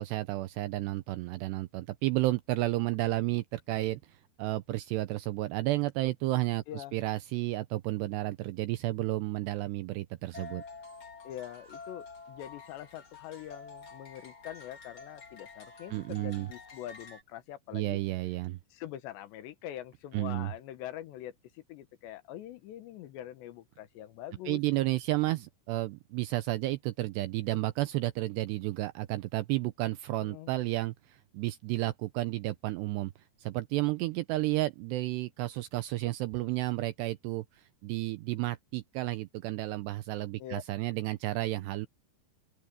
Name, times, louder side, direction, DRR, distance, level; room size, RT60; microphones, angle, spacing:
voice 1, 0.0-10.6 15.9-16.5 17.7-18.6 20.1-20.5 24.5-33.1 33.4-41.9, right 18 dB, 80° right, 2.4 m, -32 dB
voice 2, 6.7-7.0 11.2-18.0 18.7-24.6 30.2-30.5 40.4-40.6, left 12 dB, 70° left, 3.3 m, -44 dB
sound 1, 10.3-17.2, left 4 dB, 30° left, 3.1 m, -49 dB
open air
omnidirectional pair, 5.5 m